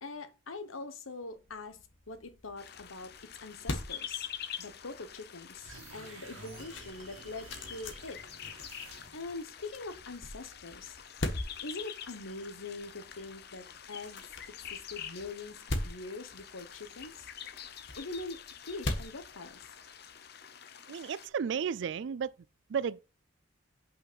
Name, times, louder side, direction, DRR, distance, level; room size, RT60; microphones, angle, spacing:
voice 1, 0.0-1.8 2.1-3.1 3.4-4.3 4.6-8.2 9.1-11.0 11.6-17.3 18.0-19.6, left 3 dB, 90° left, 1.2 m, -43 dB
sound 1, 1.4-20.1, left 1 dB, 70° left, 1.4 m, -43 dB
sound 2, 2.6-21.3, left 9 dB, 55° left, 0.8 m, -47 dB
sound 3, 5.6-9.4, right 3 dB, 85° right, 1.8 m, -51 dB
voice 2, 20.9-22.3 22.7-23.0, right 7 dB, 60° right, 0.3 m, -33 dB
5.8 x 5.6 x 6.2 m
head